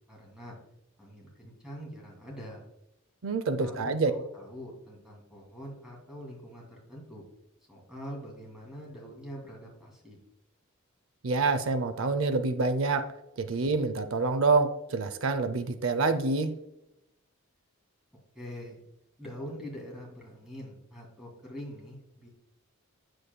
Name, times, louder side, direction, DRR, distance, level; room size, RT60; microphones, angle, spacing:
voice 1, 0.1-0.5 1.0-2.6 3.6-7.2 7.7-10.2 18.3-18.8 19.2-22.3, equal, 5° right, -3 dB, 2.5 m, -44 dB
voice 2, 3.2-4.1 11.2-13.1 13.4-16.6, right 3 dB, 65° right, 11 dB, 0.5 m, -27 dB
8.0 x 7.7 x 2.2 m, 0.88 s
head